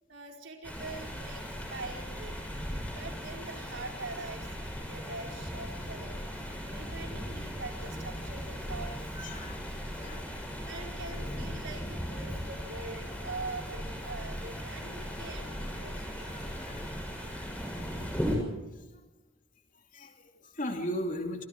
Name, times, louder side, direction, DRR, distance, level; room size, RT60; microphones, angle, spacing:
voice 1, 0.1-2.4 3.0-9.0 9.9-10.4 10.6-16.6, right 3 dB, 65° right, 2 dB, 4.8 m, -44 dB
sound 1, 0.6-18.4, equal, 5° left, 6.7 m, -38 dB
voice 2, 9.1-9.6 10.0-10.2 16.2-16.9 17.2-17.6 19.9-21.5, equal, 40° left, 3 dB, 2.8 m, -38 dB
28.0 x 24.5 x 4.7 m, 1.1 s
head